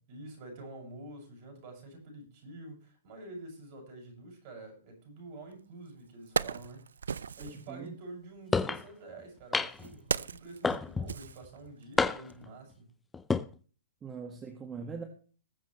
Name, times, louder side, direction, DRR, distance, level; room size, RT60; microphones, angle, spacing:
voice 1, 0.1-6.8 7.4-12.9, right 2 dB, 45° right, 2 dB, 6.9 m, -47 dB
Wood, 5.5-5.6 6.0-7.7 8.7-12.0 12.3-12.4, right 6 dB, 75° right, 0.5 m, -36 dB
voice 2, 7.4-7.9 14.0-15.0, right 5 dB, 20° right, 4 dB, 1.8 m, -42 dB
sound 1, 8.5-8.8 9.5-9.9 10.6-11.1 12.0-12.5 13.1-13.5, left 4 dB, 10° left, 0.6 m, -28 dB
20.5 x 7.4 x 3.2 m, 0.40 s
hypercardioid pair, 125°, 0 cm